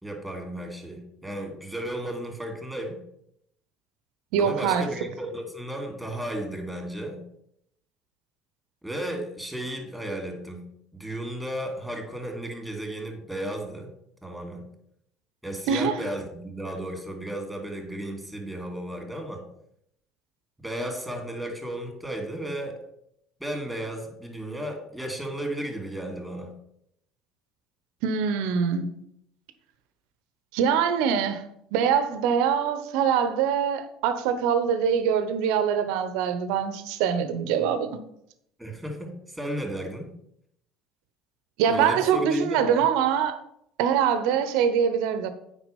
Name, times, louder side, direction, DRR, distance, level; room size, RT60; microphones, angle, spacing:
voice 1, 0.0-3.1 4.4-7.2 8.8-13.9 14.2-14.7 15.4-19.5 20.6-22.8 23.4-26.6 38.6-40.1 41.7-42.9, right 1 dB, ahead, 2.8 m, -34 dB
voice 2, 4.3-4.9 15.7-16.0 28.0-28.9 30.5-31.4 31.7-38.0 41.6-43.4 43.8-45.3, right 7 dB, 70° right, 0.9 m, -24 dB
8.8 x 4.8 x 5.3 m
hypercardioid pair, 65°, 0 cm